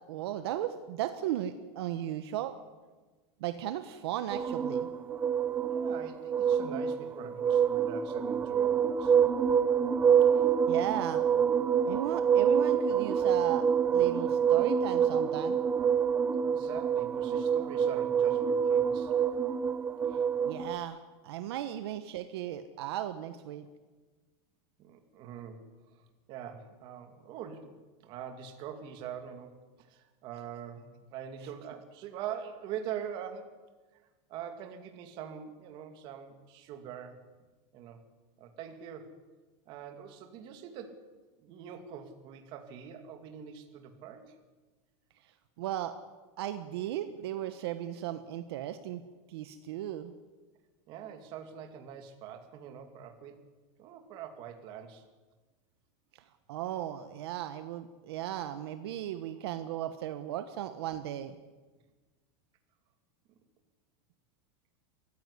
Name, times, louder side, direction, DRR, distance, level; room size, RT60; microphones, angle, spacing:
voice 1, 0.1-2.5 3.4-4.9 10.7-11.2 11.9-13.6 13.9-15.6 20.5-21.0 21.2-23.7 45.6-45.9 46.4-49.0 49.3-50.1 56.1-56.2 56.5-61.3, right 12 dB, 65° right, 9 dB, 1.3 m, -36 dB
sound 1, 4.3-20.8, right 7 dB, 15° right, 0.6 m, -27 dB
voice 2, 5.7-9.1 16.4-19.1 24.8-25.7 26.3-27.7 28.0-33.6 34.3-37.2 37.7-38.0 38.4-39.1 39.7-41.1 41.4-44.3 50.9-53.4 53.8-55.0, right 8 dB, 35° right, 7 dB, 2.5 m, -43 dB
23.5 x 15.0 x 9.8 m, 1.3 s
supercardioid pair, 175°, 14 cm